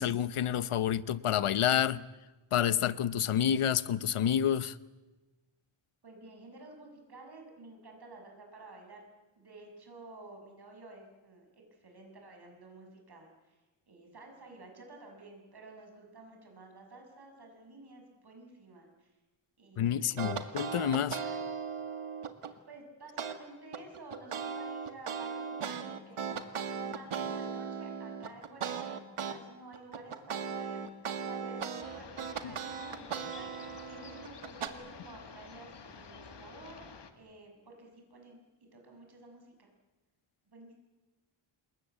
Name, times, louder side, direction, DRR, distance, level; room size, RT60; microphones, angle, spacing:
voice 1, 0.0-2.0 2.5-4.8 19.8-21.2 32.4-32.5, left 10 dB, 85° left, 1.0 m, -29 dB
voice 2, 6.0-9.0 9.3-13.6 13.9-19.1 19.6-20.5 21.2-21.4 22.4-26.3 26.8-38.4 38.7-39.7 40.5-40.7, right 2 dB, 50° right, 6.8 m, -52 dB
sound 1, 20.2-22.5 23.2-23.3 23.7-29.4 29.7-34.7, right 6 dB, 85° right, 2.0 m, -37 dB
sound 2, 31.8-37.1, left 5 dB, 55° left, 2.0 m, -50 dB
27.5 x 22.0 x 8.2 m
wide cardioid pair, 155°, 49 cm